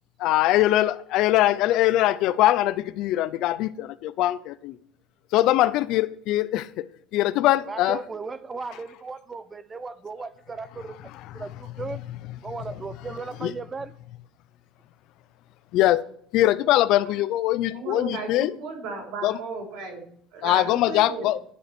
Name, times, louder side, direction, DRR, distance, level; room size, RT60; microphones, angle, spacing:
voice 1, 0.2-4.8 5.3-6.9 7.1-8.0 8.7-8.9 10.2-10.3 10.7-13.6 15.7-16.1 16.3-18.5 19.2-19.4 20.4-21.4, left 14 dB, 60° left, 0.5 m, -23 dB
voice 2, 7.7-11.0 11.3-12.0 12.4-13.9, right 4 dB, 20° right, 0.5 m, -36 dB
voice 3, 17.7-20.0 20.3-21.3, right 4 dB, 75° right, 3.7 m, -35 dB
11.0 x 5.1 x 4.5 m
cardioid pair, 145°, 0 cm